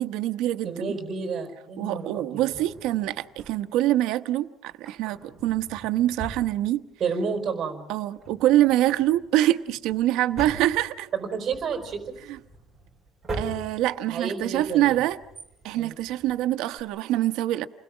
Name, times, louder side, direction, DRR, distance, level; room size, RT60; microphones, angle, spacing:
voice 1, 0.0-0.9 1.8-6.8 7.9-11.1 13.3-15.2 15.6-17.7, right 14 dB, 85° right, 1.0 m, -25 dB
voice 2, 0.6-2.6 7.0-7.8 11.1-12.1 14.1-15.0 15.7-16.0, right 5 dB, 30° right, 4.6 m, -30 dB
Drawer open or close, 2.4-3.9 4.7-7.2 7.5-7.6 8.1-16.8, right 2 dB, 15° right, 4.2 m, -42 dB
29.0 x 21.0 x 6.2 m
cardioid pair, 170°, 0 cm